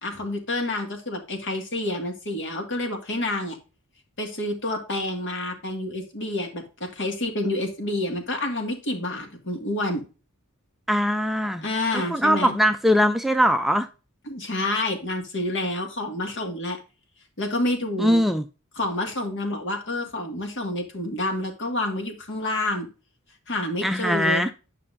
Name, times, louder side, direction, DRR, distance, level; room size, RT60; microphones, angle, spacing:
voice 1, 0.0-3.6 4.2-10.0 11.6-12.6 14.3-16.8 17.4-18.2 18.8-22.9 23.5-24.5, left 1 dB, 55° left, 2.0 m, -28 dB
voice 2, 10.9-11.6 12.1-13.9 18.0-18.4 23.8-24.5, equal, ahead, 0.4 m, -21 dB
9.7 x 5.5 x 2.6 m
head